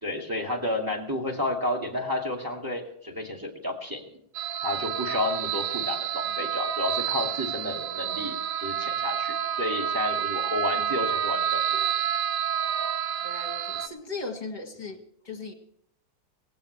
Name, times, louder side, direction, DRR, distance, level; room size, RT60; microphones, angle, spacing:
voice 1, 0.0-4.0 4.6-8.3 8.6-11.9, left 2 dB, 10° right, 3 dB, 2.1 m, -31 dB
sound 1, 4.3-13.9, right 8 dB, 65° right, 0.8 m, -29 dB
voice 2, 13.2-15.5, left 3 dB, 25° left, 5 dB, 1.7 m, -38 dB
18.5 x 16.0 x 3.3 m, 0.71 s
omnidirectional pair, 2.1 m